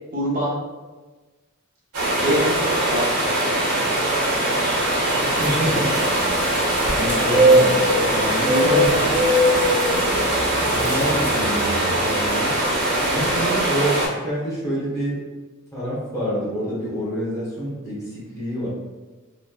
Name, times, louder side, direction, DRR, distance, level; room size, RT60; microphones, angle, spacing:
voice 1, 0.1-0.5 2.1-3.0 8.4-9.1, equal, 40° right, -8 dB, 0.9 m, -24 dB
sound 1, 1.9-14.1, right 1 dB, 85° right, 1.1 m, -22 dB
sound 2, 5.1-11.7, equal, 10° right, 0.8 m, -22 dB
voice 2, 5.4-5.9 6.9-7.7 8.1-8.9 10.6-12.6 13.1-15.2 15.7-18.7, equal, 15° left, -9 dB, 1.2 m, -27 dB
3.1 x 2.9 x 2.2 m, 1.3 s
head